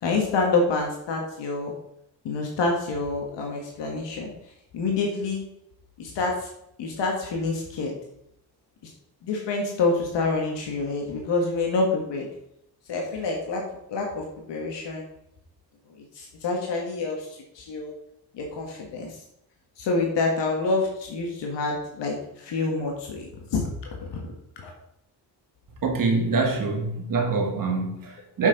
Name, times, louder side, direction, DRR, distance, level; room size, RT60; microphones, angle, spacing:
voice 1, 0.0-1.7 2.2-4.3 4.7-5.4 6.0-6.5 6.8-7.9 9.2-12.3 12.9-13.6 13.9-15.0 16.1-17.3 17.5-17.9 18.3-19.2 19.8-24.2 24.6-24.7, left 3 dB, 90° left, 1.7 m, -27 dB
voice 2, 25.8-28.5, right 3 dB, 50° right, 2.0 m, -25 dB
7.3 x 5.9 x 5.2 m
cardioid pair, 140°, 42 cm